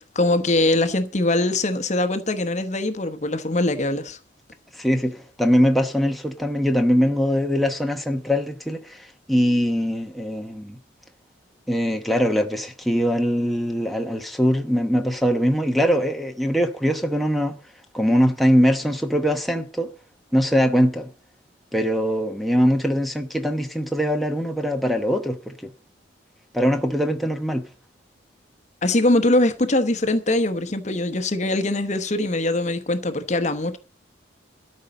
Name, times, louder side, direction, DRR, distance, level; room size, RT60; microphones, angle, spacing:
voice 1, 0.0-4.2 28.8-33.8, left 2 dB, 40° left, 1.0 m, -22 dB
voice 2, 4.7-10.8 11.7-17.6 17.9-19.9 20.3-21.1 21.7-25.7 26.5-27.7, equal, ahead, 1.0 m, -22 dB
13.0 x 5.4 x 9.2 m
head